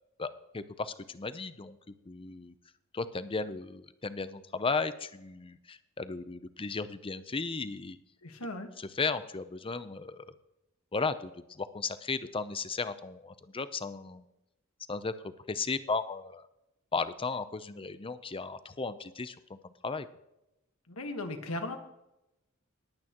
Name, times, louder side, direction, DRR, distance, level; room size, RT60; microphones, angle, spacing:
voice 1, 0.5-2.5 2.9-8.0 8.8-10.3 10.9-14.2 14.9-16.5 16.9-20.1, left 4 dB, 25° left, 12 dB, 0.6 m, -35 dB
voice 2, 8.2-8.7 20.9-21.8, left 2 dB, 70° left, 5 dB, 1.4 m, -37 dB
20.0 x 8.8 x 3.0 m, 0.88 s
head